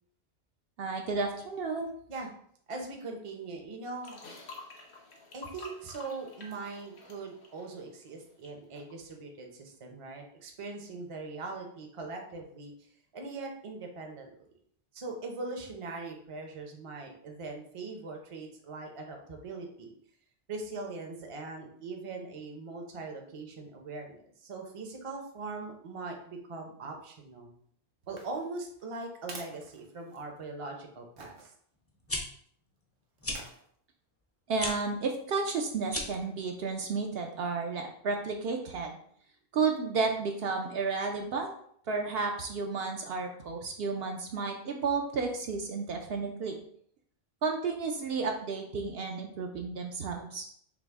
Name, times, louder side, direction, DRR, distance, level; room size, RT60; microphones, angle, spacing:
voice 1, 0.8-1.9 34.5-39.0 39.5-41.5 41.9-46.6 47.4-50.4, right 4 dB, 65° right, 3 dB, 0.8 m, -32 dB
voice 2, 2.7-4.2 5.3-12.7 13.1-14.5 14.9-19.9 20.5-27.5 28.1-31.5, right 3 dB, 35° right, 2 dB, 0.6 m, -41 dB
sound 1, 4.0-8.5 8.7-8.9, left 3 dB, 70° left, 1.2 m, -49 dB
sound 2, 28.0-30.5 31.2-31.5 33.2-33.7 34.6-35.0 35.5-35.6, right 3 dB, 85° right, 1.1 m, -49 dB
sound 3, 31.9-32.2 33.2-33.4 34.5-34.7 35.8-36.2, left 2 dB, 20° left, 0.4 m, -34 dB
5.8 x 2.1 x 3.5 m, 0.63 s
omnidirectional pair, 1.1 m